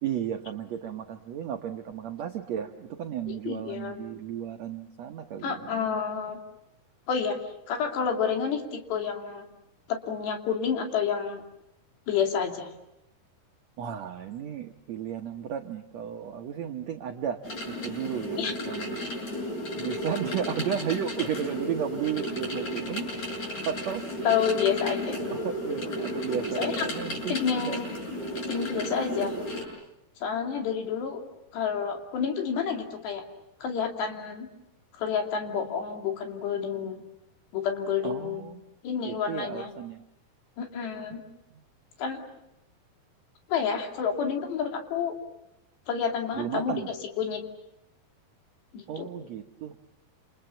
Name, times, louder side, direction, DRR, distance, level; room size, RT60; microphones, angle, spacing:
voice 1, 0.0-6.0 13.8-19.0 19.8-23.1 23.4-24.0 25.1-27.9 38.0-38.6 39.0-40.0 46.3-46.9 48.9-49.7, right 9 dB, 75° right, 5 dB, 1.6 m, -34 dB
voice 2, 3.3-4.0 5.4-6.4 7.1-7.4 7.7-9.5 9.9-11.4 12.1-12.7 18.4-18.5 24.2-25.2 26.6-26.9 27.3-27.9 28.5-29.3 30.2-31.2 31.5-33.2 33.6-34.5 34.9-37.0 37.5-38.4 38.8-39.7 40.6-41.2 42.0-42.2 43.5-45.1 45.9-46.8 47.2-47.4 48.7-49.1, left 7 dB, 90° left, 4 dB, 4.9 m, -29 dB
sound 1, 17.4-29.6, left 1 dB, 45° left, 8.5 m, -34 dB
28.5 x 28.5 x 7.1 m, 0.84 s
omnidirectional pair, 4.7 m